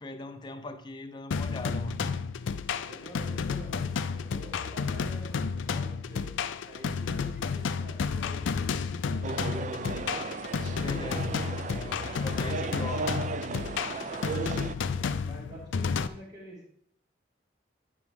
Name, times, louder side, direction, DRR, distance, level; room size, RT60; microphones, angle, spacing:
voice 1, 0.0-2.1 10.7-13.2, left 2 dB, 25° left, 0.5 m, -40 dB
sound 1, 1.3-16.1, left 5 dB, 80° left, 0.4 m, -31 dB
voice 2, 2.8-6.3 6.6-10.2 14.0-16.7, right 1 dB, 20° right, 3.3 m, -48 dB
sound 2, 9.2-14.8, right 4 dB, 40° right, 0.3 m, -35 dB
9.9 x 5.8 x 3.5 m
head